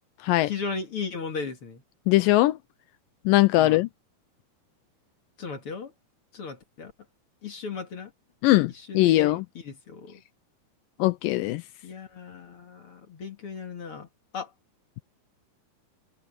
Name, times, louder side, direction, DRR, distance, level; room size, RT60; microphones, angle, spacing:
voice 1, 0.4-1.8 3.6-3.9 5.4-5.9 6.3-6.9 7.4-8.1 8.7-10.2 11.8-14.1 14.3-14.5, left 5 dB, 45° left, 2.4 m, -36 dB
voice 2, 2.1-2.6 3.3-3.9 8.4-9.5 11.0-11.6, left 17 dB, 80° left, 2.1 m, -20 dB
omnidirectional pair, 4.2 m